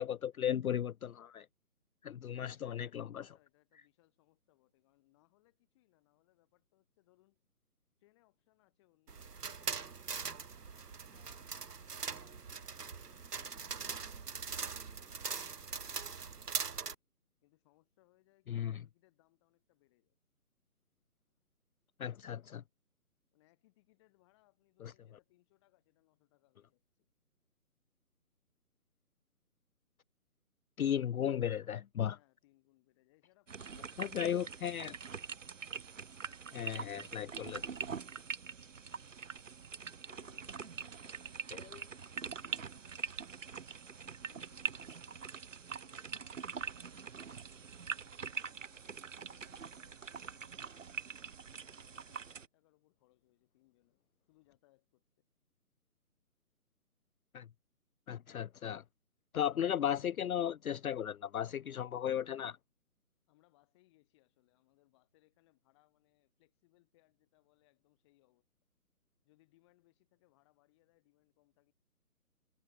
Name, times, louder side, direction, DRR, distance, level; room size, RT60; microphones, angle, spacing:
voice 1, 0.0-1.5 2.0-3.3 18.5-18.8 22.0-22.6 24.8-24.9 30.8-32.2 34.0-34.9 36.5-37.6 41.5-41.8 57.3-57.5 58.1-58.8 59.3-62.6, left 9 dB, 65° left, 0.5 m, -35 dB
voice 2, 2.3-7.4 8.0-10.6 11.1-16.7 17.4-20.2 23.3-27.1 32.1-34.9 36.2-37.9 38.7-39.5 40.1-45.4 45.8-51.1 51.5-54.0 54.3-55.0 63.3-68.5 69.2-71.7, left 20 dB, 20° left, 6.9 m, -72 dB
sound 1, 9.1-16.9, right 5 dB, 85° right, 1.7 m, -41 dB
sound 2, 33.5-52.5, right 6 dB, 55° right, 1.8 m, -44 dB
hypercardioid pair, 165°, 46 cm